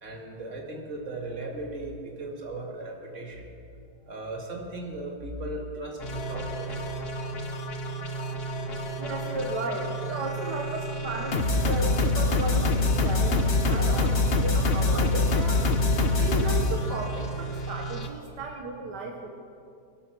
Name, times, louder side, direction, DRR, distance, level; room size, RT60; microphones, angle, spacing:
voice 1, 0.0-3.6 4.1-6.9, right 2 dB, 45° right, 0 dB, 2.4 m, -37 dB
sound 1, 6.0-18.1, left 2 dB, 40° left, 1.1 m, -26 dB
voice 2, 9.0-15.6 16.2-19.3, right 2 dB, 80° right, 2 dB, 1.8 m, -34 dB
23.0 x 8.3 x 6.2 m, 2.4 s
omnidirectional pair, 1.8 m